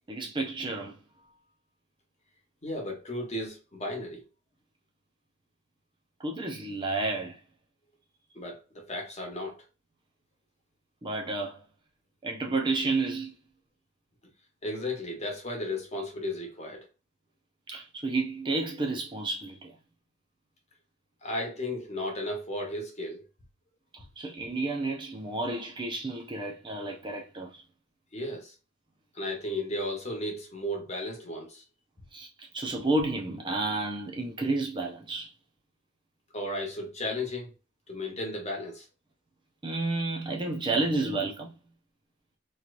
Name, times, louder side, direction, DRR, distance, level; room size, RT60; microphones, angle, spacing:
voice 1, 0.1-1.0 6.2-7.4 11.0-11.6 12.2-13.3 17.7-19.7 24.2-27.6 32.1-35.3 39.6-41.5, right 2 dB, 25° right, 0.5 m, -31 dB
voice 2, 2.6-4.2 8.3-9.6 14.6-16.8 21.2-23.2 28.1-28.5 29.1-31.6 36.3-37.5 37.9-38.8, left 1 dB, 35° left, 1.1 m, -34 dB
3.2 x 2.9 x 2.5 m
head